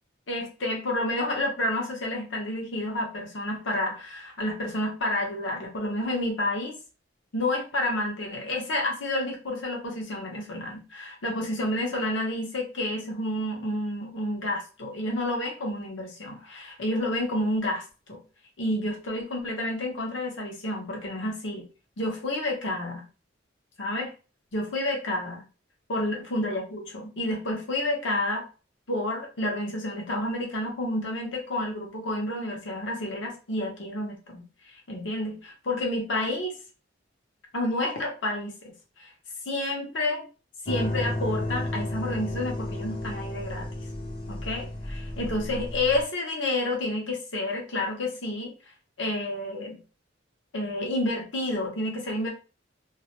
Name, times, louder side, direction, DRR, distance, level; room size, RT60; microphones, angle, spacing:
voice 1, 0.3-6.7 7.3-18.2 18.6-21.6 22.0-23.1 23.8-24.1 24.5-25.5 25.9-28.4 28.9-34.5 34.9-36.6 37.5-38.7 39.0-39.1 39.5-40.3 40.7-43.7 44.3-48.5 49.0-49.8 50.5-52.3, left 1 dB, 75° left, 0 dB, 0.8 m, -30 dB
sound 1, 40.7-46.0, left 1 dB, 30° left, 0.5 m, -32 dB
2.4 x 2.0 x 2.8 m, 0.34 s
head